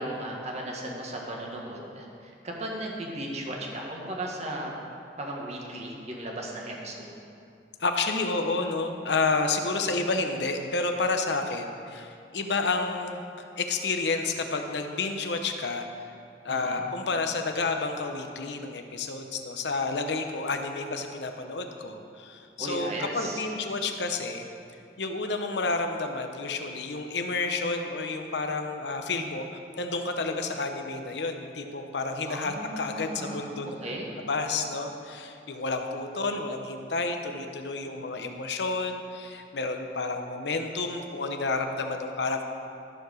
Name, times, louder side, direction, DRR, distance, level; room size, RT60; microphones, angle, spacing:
voice 1, 0.0-4.7 5.2-7.1 16.5-16.8 22.6-23.4 32.3-34.1, right 1 dB, 40° right, -1 dB, 1.6 m, -36 dB
voice 2, 7.8-13.2 13.6-15.9 16.4-24.5 25.0-29.5 29.8-33.8 34.2-42.5, left 3 dB, 70° left, 5 dB, 0.8 m, -30 dB
13.5 x 4.8 x 6.3 m, 2.5 s
head